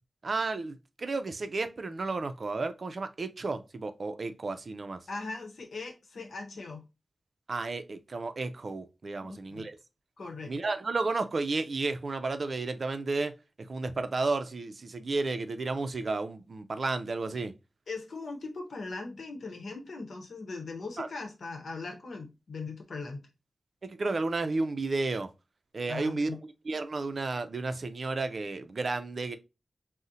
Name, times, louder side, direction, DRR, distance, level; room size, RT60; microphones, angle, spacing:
voice 1, 0.2-5.1 7.5-9.8 10.5-17.5 21.0-21.1 23.8-25.3 25.7-29.4, right 3 dB, 65° right, 0.4 m, -32 dB
voice 2, 5.1-6.8 9.2-9.6 10.2-10.5 17.9-23.2 25.9-26.4, left 3 dB, 85° left, 0.8 m, -40 dB
2.7 x 2.0 x 3.7 m
cardioid pair, 45°, 0 cm